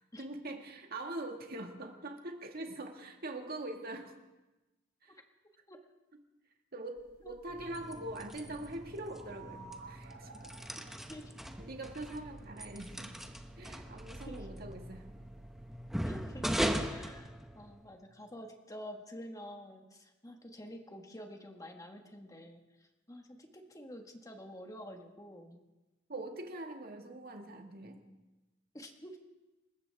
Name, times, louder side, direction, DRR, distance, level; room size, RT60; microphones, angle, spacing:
voice 1, 0.2-4.2 5.0-5.2 6.7-10.5 10.8-10.9 11.6-15.1 26.1-28.0, right 2 dB, 50° right, 3 dB, 1.9 m, -43 dB
sound 1, 7.0-17.2, right 2 dB, 80° right, 6.6 m, -55 dB
sound 2, 7.5-18.0, equal, ahead, 0.9 m, -40 dB
voice 2, 16.0-16.5 16.9-22.6 23.1-25.6 28.7-29.2, equal, 15° left, 4 dB, 1.6 m, -48 dB
27.0 x 14.0 x 3.5 m, 1.1 s
head